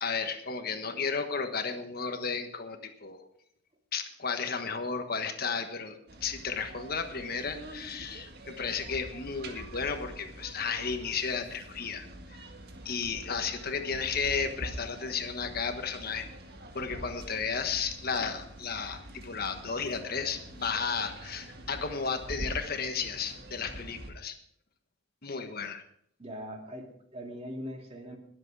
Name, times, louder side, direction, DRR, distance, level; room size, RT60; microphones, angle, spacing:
voice 1, 0.0-3.3 3.9-5.9 6.2-12.1 12.8-16.3 16.7-24.3 25.2-25.8, left 5 dB, 55° left, 7 dB, 1.3 m, -33 dB
sound 1, 6.1-24.1, right 1 dB, 55° right, 1.8 m, -45 dB
voice 2, 26.2-28.2, equal, 30° right, 2 dB, 2.5 m, -41 dB
21.5 x 7.8 x 4.8 m, 0.67 s
head